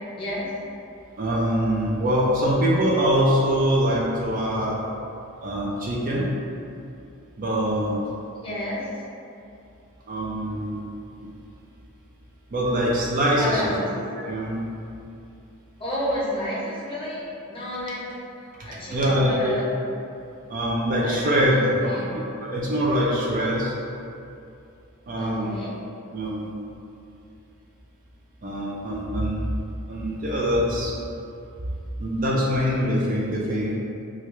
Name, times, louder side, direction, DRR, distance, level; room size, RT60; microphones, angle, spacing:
voice 1, 0.2-0.5 8.4-9.0 13.4-13.8 15.8-18.1 18.4-19.7 21.0-22.1 25.2-25.8, left 1 dB, 25° left, -7 dB, 0.6 m, -31 dB
voice 2, 1.2-4.9 5.4-6.3 7.4-8.0 10.1-10.8 11.2-11.3 12.5-13.6 14.2-14.7 18.6-19.5 20.5-23.7 25.1-25.5 26.1-26.5 28.4-29.5 29.9-30.9 32.0-33.8, equal, 40° right, -4 dB, 0.4 m, -23 dB
3.2 x 2.3 x 3.0 m, 2.6 s
head